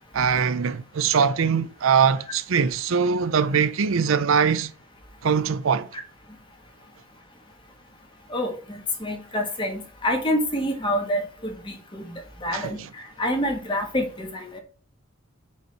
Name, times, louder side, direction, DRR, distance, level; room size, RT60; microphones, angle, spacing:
voice 1, 0.1-4.7 5.2-5.9 12.5-12.9, right 6 dB, 75° right, 0.5 m, -22 dB
voice 2, 8.3-12.0 12.4-14.6, equal, 25° left, 1.7 m, -27 dB
5.5 x 4.6 x 5.8 m
head